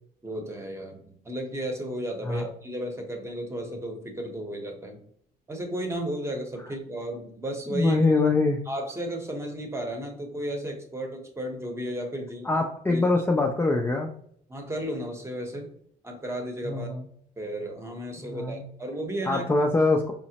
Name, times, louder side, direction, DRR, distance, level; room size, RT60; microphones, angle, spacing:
voice 1, 0.2-5.0 5.5-8.0 8.7-12.6 12.9-13.1 14.5-15.7 16.0-16.9 17.4-19.5, right 1 dB, 15° right, 3 dB, 0.8 m, -34 dB
voice 2, 7.7-8.6 12.4-14.1 16.7-17.0 18.2-18.6 19.3-20.1, left 3 dB, 10° left, 1 dB, 0.3 m, -24 dB
4.9 x 2.0 x 2.8 m, 0.65 s
cardioid pair, 110°, 17 cm